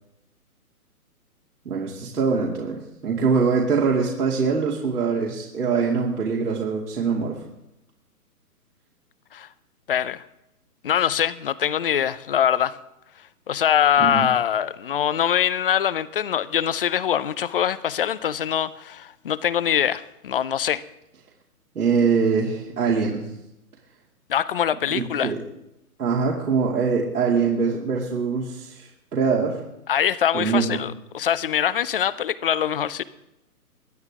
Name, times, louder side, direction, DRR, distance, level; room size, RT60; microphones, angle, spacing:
voice 1, 1.6-7.4 14.0-14.3 21.7-23.2 24.9-25.4 26.0-29.6 30.3-30.8, right 5 dB, 75° right, -3 dB, 2.7 m, -23 dB
voice 2, 9.9-10.2 10.8-12.8 13.5-20.8 24.3-25.3 29.9-33.0, left 9 dB, 40° left, 18 dB, 0.6 m, -23 dB
23.0 x 9.6 x 3.6 m, 0.89 s
hypercardioid pair, 145°, 46 cm